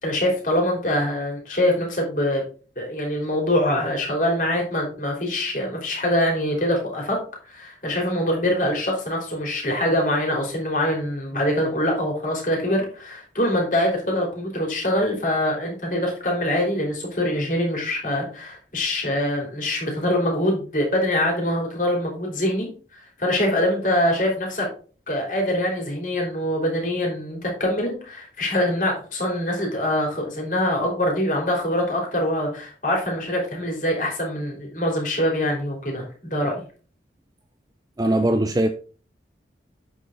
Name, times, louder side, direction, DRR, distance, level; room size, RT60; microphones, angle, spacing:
voice 1, 0.0-2.4 2.8-7.2 7.5-24.7 25.1-36.6, left 1 dB, 45° left, -1 dB, 3.6 m, -24 dB
voice 2, 38.0-38.7, right 1 dB, 20° right, 7 dB, 0.5 m, -20 dB
8.5 x 6.8 x 3.9 m, 0.39 s
head